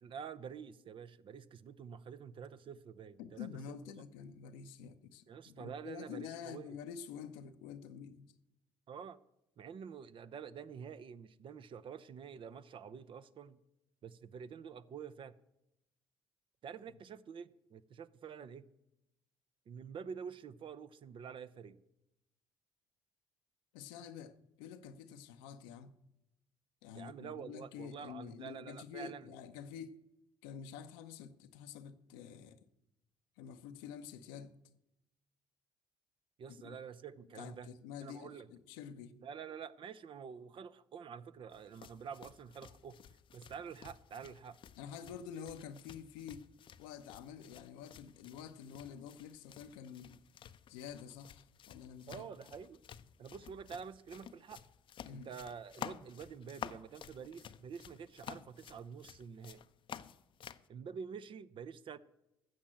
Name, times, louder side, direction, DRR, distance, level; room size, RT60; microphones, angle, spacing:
voice 1, 0.0-3.8 5.3-6.8 8.9-9.2 9.6-13.6 14.0-15.3 16.6-18.7 19.7-21.8 26.9-29.3 36.4-37.7 38.0-38.5 39.2-43.0 43.3-44.6 52.1-52.8 53.2-54.6 55.1-59.6 60.7-62.0, right 7 dB, 50° right, 0.7 m, -48 dB
voice 2, 3.2-8.3 23.7-25.9 26.8-30.0 30.4-32.6 33.4-34.5 36.6-36.8 37.4-39.1 44.8-46.5 46.8-50.2 50.7-52.3 55.1-55.3, left 7 dB, 85° left, 0.8 m, -48 dB
sound 1, 41.5-60.7, left 9 dB, 55° left, 0.6 m, -52 dB
12.5 x 7.4 x 7.6 m
hypercardioid pair, 55°, 11 cm